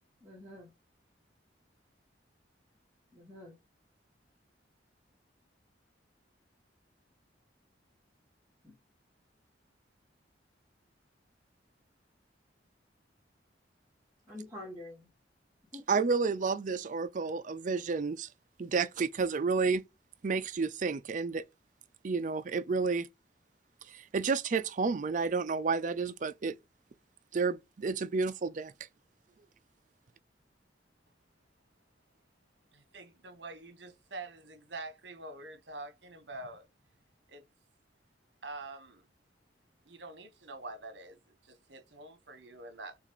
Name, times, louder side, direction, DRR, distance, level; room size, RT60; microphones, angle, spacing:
voice 1, 0.2-0.7 3.1-3.6 8.6-8.8 14.3-15.1 15.7-15.8, left 1 dB, 15° right, 1.5 m, -46 dB
voice 2, 15.9-18.3 18.6-19.8 20.2-21.4 22.0-23.1 23.9-26.5 27.3-28.7, right 4 dB, 45° right, 0.4 m, -30 dB
voice 3, 32.7-36.7 37.3-37.4 38.4-39.0 39.9-43.0, right 2 dB, 65° right, 1.1 m, -46 dB
6.8 x 2.4 x 3.0 m
head